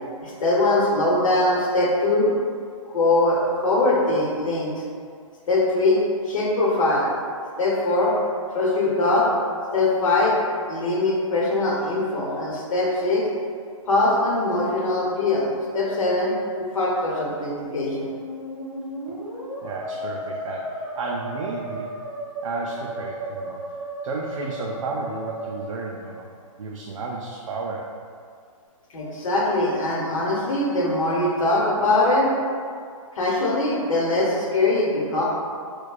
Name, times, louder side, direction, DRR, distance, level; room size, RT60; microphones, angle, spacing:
voice 1, 0.2-2.3 2.9-4.7 5.5-6.0 6.3-7.1 7.6-8.1 8.5-9.3 9.7-10.4 10.7-13.2 13.9-15.5 15.7-18.1 28.9-32.3 33.2-35.2, left 2 dB, 70° left, -4 dB, 0.9 m, -22 dB
Musical instrument, 17.8-26.6, right 1 dB, ahead, 0.5 m, -34 dB
voice 2, 19.6-21.9 22.4-23.6 24.0-26.3 26.6-27.9, right 3 dB, 65° right, -1 dB, 0.4 m, -32 dB
4.5 x 2.2 x 2.4 m, 2.2 s
hypercardioid pair, 170°, 18 cm